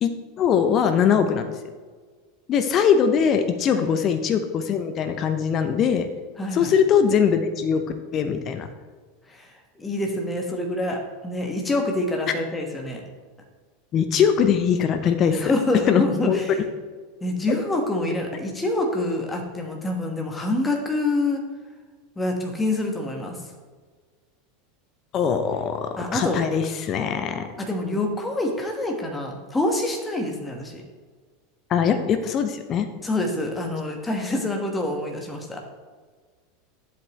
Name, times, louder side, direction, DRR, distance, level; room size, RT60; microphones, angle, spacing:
voice 1, 0.0-1.5 2.5-6.1 6.5-7.8 8.1-8.7 13.9-15.5 15.9-16.7 25.1-27.5 31.7-32.9, left 7 dB, 35° left, 8 dB, 0.7 m, -21 dB
voice 2, 6.4-6.7 9.3-13.0 15.3-16.5 17.2-21.4 22.2-23.4 26.0-26.4 27.6-30.8 33.0-35.6, left 2 dB, 15° left, 2 dB, 1.5 m, -26 dB
10.0 x 8.0 x 3.1 m, 1.5 s
figure-of-eight pair, 80°, 0 cm